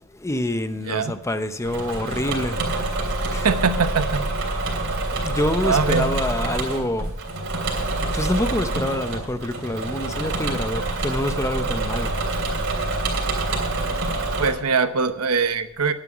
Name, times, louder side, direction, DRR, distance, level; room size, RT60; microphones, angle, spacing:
voice 1, 0.1-2.8 3.3-3.5 5.2-7.2 8.1-12.2, left 1 dB, 15° left, 0.6 m, -26 dB
Engine / Mechanisms, 1.6-14.5, right 2 dB, 55° right, 3.2 m, -26 dB
voice 2, 3.4-4.3 5.6-6.2 14.4-15.9, right 5 dB, 85° right, 1.0 m, -22 dB
11.0 x 9.0 x 6.1 m
head